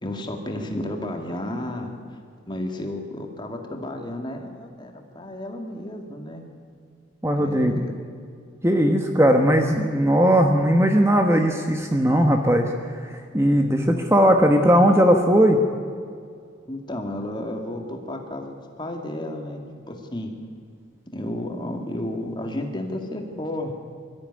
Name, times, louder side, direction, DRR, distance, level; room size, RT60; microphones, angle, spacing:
voice 1, 0.0-1.9 2.5-6.4 7.3-7.9 16.7-20.3 21.1-23.7, left 1 dB, 25° left, 3 dB, 2.2 m, -32 dB
voice 2, 7.2-7.9 8.6-15.6, equal, 15° right, 4 dB, 1.1 m, -18 dB
22.5 x 14.0 x 9.8 m, 2.2 s
head